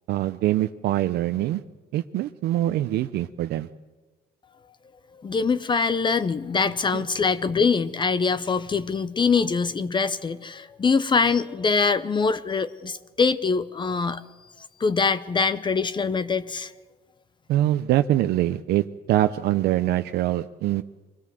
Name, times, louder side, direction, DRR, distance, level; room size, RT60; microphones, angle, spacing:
voice 1, 0.1-1.6 1.9-3.7 6.9-7.0 17.5-20.8, right 14 dB, 75° right, 9 dB, 0.6 m, -24 dB
voice 2, 5.1-14.2 14.8-16.7, left 5 dB, 30° left, 14 dB, 0.7 m, -23 dB
24.0 x 17.0 x 7.7 m, 1.3 s
cardioid pair, 110°, 17 cm